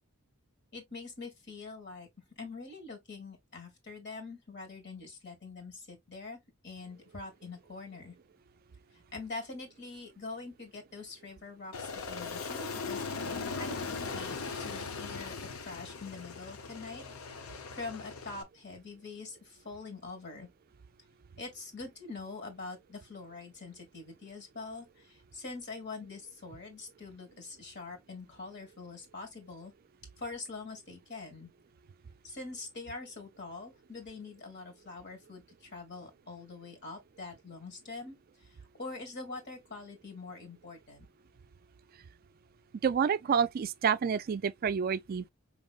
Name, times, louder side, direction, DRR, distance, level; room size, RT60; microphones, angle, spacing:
voice 1, 0.7-2.1 2.4-6.4 6.6-8.1 9.1-13.1 13.6-17.0 17.5-20.5 21.4-29.7 30.2-31.5 32.2-38.2 38.4-41.1, left 3 dB, 55° left, 1.8 m, -44 dB
Aircraft, 11.7-18.4, left 4 dB, 80° left, 0.7 m, -39 dB
voice 2, 42.8-45.3, right 7 dB, 45° right, 0.3 m, -28 dB
5.1 x 3.0 x 2.4 m
head